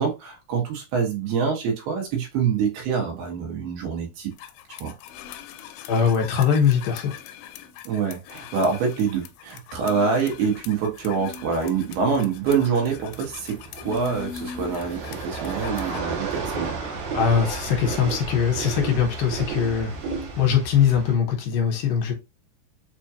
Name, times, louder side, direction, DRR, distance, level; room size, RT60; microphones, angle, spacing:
voice 1, 0.0-4.3 4.7-4.9 7.8-16.8, right 5 dB, 85° right, 3.4 m, -25 dB
sound 1, 4.4-16.0, left 8 dB, 90° left, 2.5 m, -40 dB
voice 2, 5.9-7.2 17.1-19.9 20.4-22.1, left 7 dB, 70° left, 2.7 m, -21 dB
sound 2, 10.3-21.2, right 4 dB, 65° right, 1.9 m, -33 dB
6.8 x 2.4 x 2.8 m
omnidirectional pair, 4.4 m